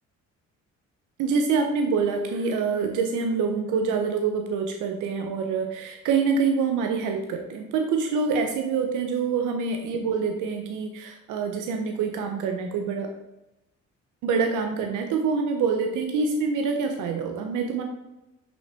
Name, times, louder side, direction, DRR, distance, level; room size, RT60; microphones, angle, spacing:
voice 1, 1.2-13.1 14.2-17.8, right 5 dB, 85° right, 4 dB, 0.7 m, -26 dB
5.7 x 5.4 x 3.4 m, 0.95 s
cardioid pair, 90°, 30 cm